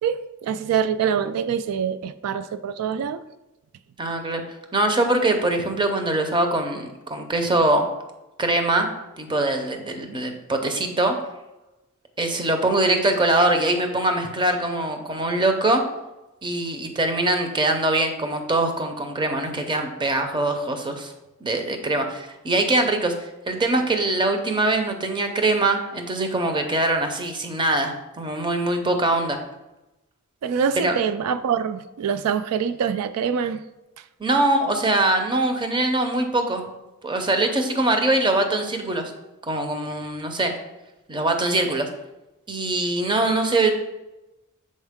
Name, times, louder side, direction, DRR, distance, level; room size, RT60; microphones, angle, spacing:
voice 1, 0.0-3.2 30.4-33.6, right 7 dB, 85° right, 11 dB, 0.3 m, -25 dB
voice 2, 4.0-4.4 4.7-7.9 8.4-8.9 9.2-11.2 12.2-15.8 16.4-21.1 21.4-23.1 23.5-29.4 30.8-31.0 34.2-36.6 37.0-39.1 39.5-40.5 41.1-41.9 42.5-43.7, right 2 dB, 20° right, 5 dB, 0.6 m, -22 dB
6.4 x 4.4 x 3.5 m, 0.98 s
head